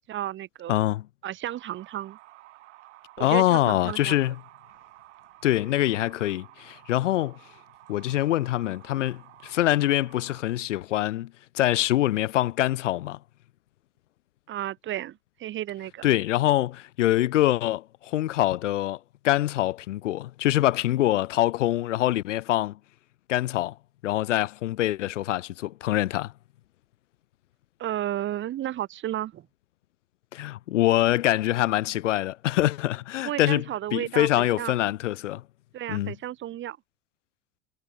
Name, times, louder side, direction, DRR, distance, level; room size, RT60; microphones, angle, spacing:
voice 1, 0.1-0.8 1.2-2.2 3.2-4.3 14.5-16.1 27.8-29.5 33.2-34.8 35.7-36.8, right 12 dB, 35° right, 0.9 m, -33 dB
voice 2, 0.7-1.1 3.2-4.4 5.4-7.4 7.9-13.2 16.0-19.0 19.2-22.8 23.3-23.7 24.0-26.3 30.3-33.6 33.9-35.4 35.9-36.1, left 14 dB, 80° left, 1.4 m, -24 dB
sound 1, 1.5-10.4, right 18 dB, 70° right, 7.5 m, -52 dB
hypercardioid pair, 95°, 36 cm